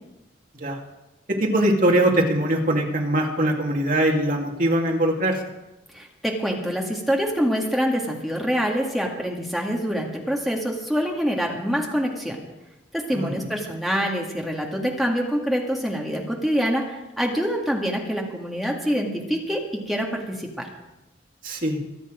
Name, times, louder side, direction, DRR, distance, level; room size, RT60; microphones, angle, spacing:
voice 1, 1.3-5.4 13.1-13.3 21.4-21.8, right 1 dB, 45° right, 0 dB, 2.3 m, -22 dB
voice 2, 5.9-12.4 12.9-20.7, equal, ahead, -1 dB, 2.0 m, -25 dB
23.5 x 8.5 x 5.1 m, 0.98 s
head